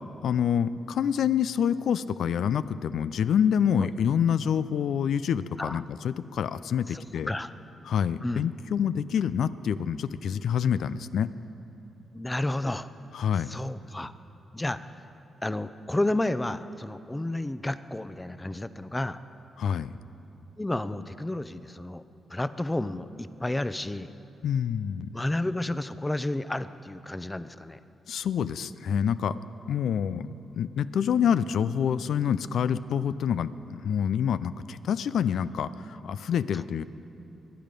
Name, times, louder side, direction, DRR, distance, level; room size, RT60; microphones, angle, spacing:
voice 1, 0.2-7.3 7.9-11.3 13.1-13.5 19.6-19.9 24.4-25.1 28.1-29.3 29.7-36.8, left 8 dB, 75° left, 14 dB, 0.4 m, -27 dB
voice 2, 6.9-7.5 8.2-8.5 12.1-12.9 13.5-14.1 14.5-14.9 15.4-19.2 20.6-22.0 22.3-24.1 25.1-27.8 36.5-36.6, left 1 dB, 15° left, 13 dB, 0.6 m, -31 dB
23.0 x 9.2 x 5.2 m, 2.9 s
supercardioid pair, 50°, 0 cm